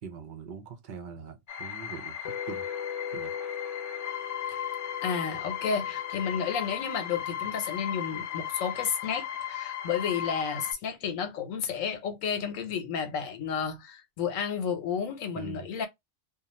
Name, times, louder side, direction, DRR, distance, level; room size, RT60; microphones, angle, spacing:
voice 1, 0.0-2.2 2.5-2.7 3.1-3.3 15.4-15.7, right 6 dB, 50° right, 0.6 m, -42 dB
sound 1, 1.5-10.7, left 10 dB, 50° left, 0.5 m, -36 dB
sound 2, 2.2-8.3, left 8 dB, 65° left, 0.9 m, -40 dB
voice 2, 5.0-15.9, left 7 dB, 85° left, 1.1 m, -32 dB
2.4 x 2.3 x 2.9 m
omnidirectional pair, 1.3 m